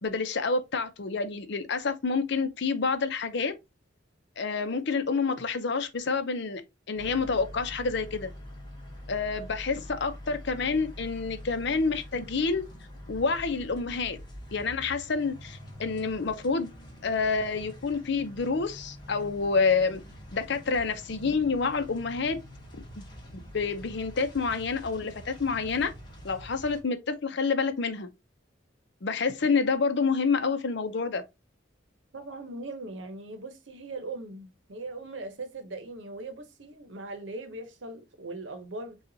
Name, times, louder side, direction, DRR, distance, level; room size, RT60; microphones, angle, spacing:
voice 1, 0.0-3.5 4.4-6.6 6.9-8.3 9.1-12.6 13.1-14.2 14.5-16.7 17.0-20.0 20.3-22.4 22.7-23.0 23.5-25.9 26.2-28.1 29.0-31.2, left 4 dB, 65° left, 0.6 m, -28 dB
sound 1, 7.0-26.8, equal, 25° left, 1.2 m, -45 dB
voice 2, 32.1-39.0, right 2 dB, 70° right, 0.9 m, -40 dB
6.6 x 2.4 x 2.7 m
head